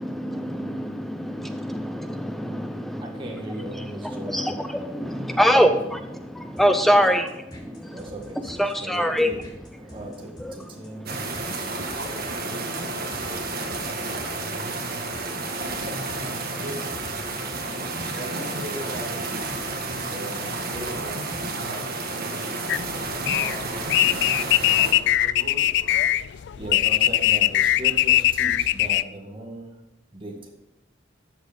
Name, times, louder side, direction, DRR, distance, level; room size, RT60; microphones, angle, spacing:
voice 1, 0.0-11.2, equal, ahead, 7 dB, 0.5 m, -25 dB
voice 2, 3.0-4.4 7.9-8.4 8.9-9.4 9.8-10.3 10.8-11.0 26.3-29.7 30.1-30.5, right 1 dB, 25° right, 0 dB, 1.8 m, -37 dB
sound 1, 6.6-21.8, equal, 20° left, 2.6 m, -47 dB
sound 2, 11.1-24.9, right 3 dB, 50° right, 1.6 m, -31 dB
voice 3, 11.7-13.5 13.8-14.5 16.5-16.8 18.2-19.1 20.1-22.4 22.9-24.0 24.4-26.2 27.4-27.5, right 1 dB, 85° right, 1 dB, 3.7 m, -40 dB
sound 3, 22.7-29.0, left 14 dB, 60° left, 0.3 m, -21 dB
13.0 x 6.6 x 5.2 m, 0.91 s
head